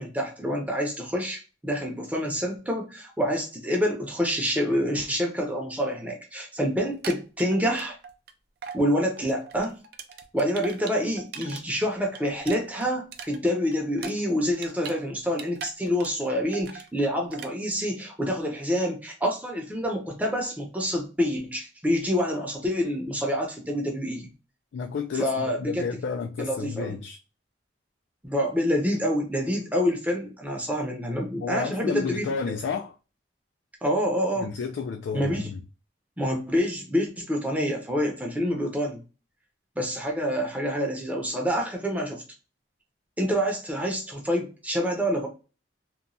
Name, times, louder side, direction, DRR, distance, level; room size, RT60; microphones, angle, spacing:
voice 1, 0.0-8.0 8.7-9.7 10.3-24.3 25.1-25.9 26.4-27.0 28.2-32.3 33.8-34.5 35.1-35.5 36.2-39.0 39.8-42.2 43.2-45.3, equal, 10° right, 0.6 m, -27 dB
sound 1, 6.8-8.3 8.6-8.8 9.2-11.6 11.9-15.0 15.3-16.3 16.5-16.9 17.3-17.5, right 6 dB, 55° right, 0.4 m, -40 dB
voice 2, 24.7-25.3 25.6-27.2 31.4-33.0 34.4-35.6, left 5 dB, 75° left, 0.3 m, -31 dB
2.9 x 2.2 x 2.5 m
head